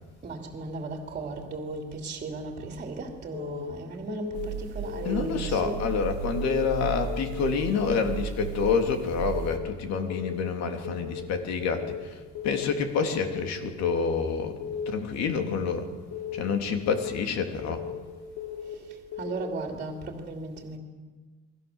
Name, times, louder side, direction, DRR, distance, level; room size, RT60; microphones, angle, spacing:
voice 1, 0.2-5.8 19.2-20.8, right 3 dB, 25° right, 3 dB, 2.9 m, -36 dB
Keyboard (musical) / Alarm, 3.3-3.7 4.1-4.5 4.8-5.2 5.6-6.0 6.3-6.7 7.1-7.5 7.8-8.2 8.6-9.0 9.3-9.7 10.1-10.5 10.8-11.2 11.6-12.0 12.4-12.7 13.1-13.5 13.9-14.2 14.6-15.0 15.4-15.7 16.1-16.5 16.9-17.2 17.6-18.0 18.4-18.8 19.1-19.5, left 8 dB, 90° left, 4.0 m, -36 dB
sound 1, 4.3-9.6, right 7 dB, 85° right, 1.9 m, -35 dB
voice 2, 5.0-12.2 12.4-14.6 14.9-15.9 16.3-17.8, left 5 dB, 60° left, 5 dB, 3.3 m, -28 dB
29.5 x 22.5 x 7.3 m, 1.4 s
cardioid pair, 175°, 30 cm